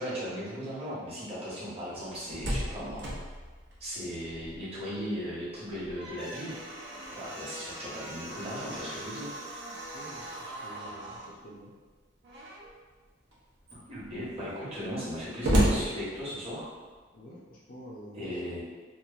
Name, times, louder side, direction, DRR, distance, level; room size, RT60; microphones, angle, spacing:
voice 1, 0.0-3.0 3.8-6.5 7.1-9.3 13.7-16.7 18.1-18.6, equal, 35° right, -9 dB, 1.0 m, -37 dB
Slam, 2.0-4.8 5.1-5.2 5.7-11.3 12.2-12.8 13.3-13.4 13.6-16.7, right 1 dB, 65° right, 0.6 m, -34 dB
voice 2, 9.9-11.7 17.1-18.6, equal, 50° left, -4 dB, 0.5 m, -48 dB
2.9 x 2.1 x 2.3 m, 1.4 s
head